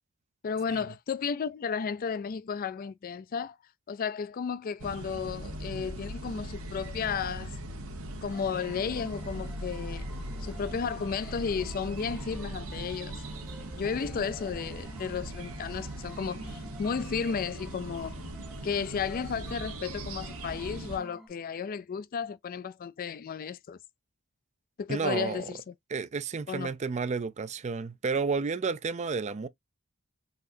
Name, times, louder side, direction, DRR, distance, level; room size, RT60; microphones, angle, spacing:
voice 1, 0.4-3.6 3.9-7.5 8.2-10.0 10.4-13.2 13.8-18.2 18.6-23.8 24.8-25.7 26.5-26.7, left 6 dB, 40° left, 0.3 m, -33 dB
sound 1, 4.8-21.0, right 1 dB, 70° right, 1.2 m, -40 dB
sound 2, 8.3-21.3, equal, ahead, 0.7 m, -52 dB
voice 2, 24.9-25.4 25.9-29.5, right 5 dB, 30° right, 0.4 m, -31 dB
4.1 x 2.8 x 2.6 m
head